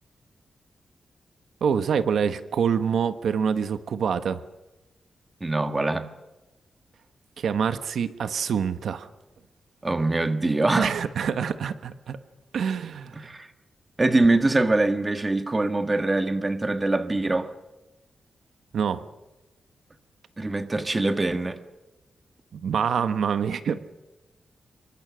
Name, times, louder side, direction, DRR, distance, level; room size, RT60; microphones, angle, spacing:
voice 1, 1.6-4.4 7.4-9.1 10.8-12.2 12.5-13.3 18.7-19.1 22.5-23.8, right 7 dB, 80° right, 1.3 m, -26 dB
voice 2, 5.4-6.1 9.8-10.9 13.2-13.5 14.0-17.5 20.4-21.6, right 2 dB, 20° right, 1.6 m, -23 dB
28.0 x 23.5 x 6.4 m
wide cardioid pair, 160°, 0 cm